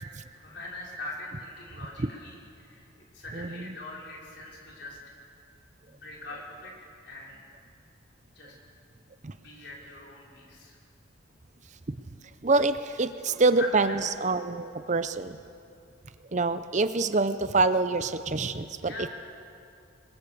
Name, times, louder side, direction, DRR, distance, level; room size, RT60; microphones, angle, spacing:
voice 1, 0.3-2.9 3.1-5.1 5.9-6.7 7.0-7.4 8.4-8.5 9.3-10.8 13.3-14.0 18.8-19.1, left 2 dB, 55° left, -3 dB, 5.4 m, -42 dB
voice 2, 3.3-3.7 9.2-9.3 12.4-15.4 16.3-19.1, right 3 dB, 35° right, 12 dB, 0.6 m, -26 dB
26.5 x 22.0 x 7.0 m, 2.6 s
head